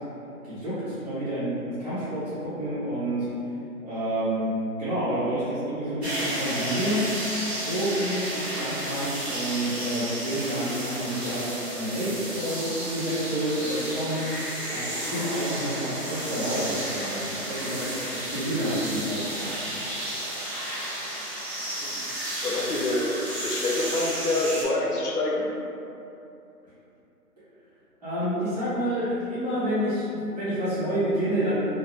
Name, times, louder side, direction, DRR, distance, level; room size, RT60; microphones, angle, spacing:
voice 1, 0.3-3.3 3.8-4.5 4.8-7.1 7.6-14.2 14.7-19.8 28.0-31.7, right 1 dB, 25° right, -16 dB, 1.0 m, -29 dB
sound 1, 6.0-24.6, right 1 dB, 45° right, 0.7 m, -32 dB
voice 2, 22.4-23.1 23.4-25.5, left 2 dB, 75° left, -3 dB, 0.8 m, -26 dB
2.7 x 2.2 x 3.4 m, 2.7 s
hypercardioid pair, 180°, 47 cm